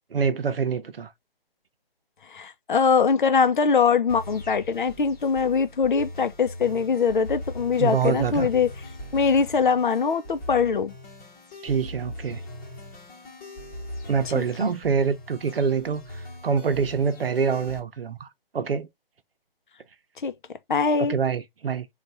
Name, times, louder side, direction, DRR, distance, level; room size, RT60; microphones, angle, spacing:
voice 1, 0.1-1.1 7.8-8.5 11.6-12.4 14.1-18.3 18.5-18.9 21.0-21.9, right 6 dB, 70° right, 0.8 m, -25 dB
voice 2, 2.3-8.7 9.1-10.9 14.6-14.7 20.2-20.3 20.7-21.1, left 5 dB, 55° left, 0.6 m, -22 dB
sound 1, 4.1-17.8, left 1 dB, 20° left, 1.1 m, -40 dB
3.3 x 2.4 x 4.1 m
hypercardioid pair, 160°, 30 cm